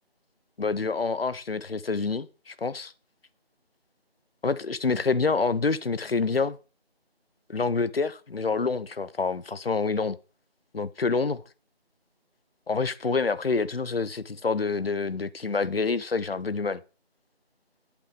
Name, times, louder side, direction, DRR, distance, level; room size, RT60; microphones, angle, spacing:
voice 1, 0.6-2.9 4.4-6.6 7.5-10.2 10.7-11.4 12.7-16.8, left 4 dB, 65° left, 0.6 m, -27 dB
8.3 x 7.8 x 3.4 m
figure-of-eight pair, 170°, 32 cm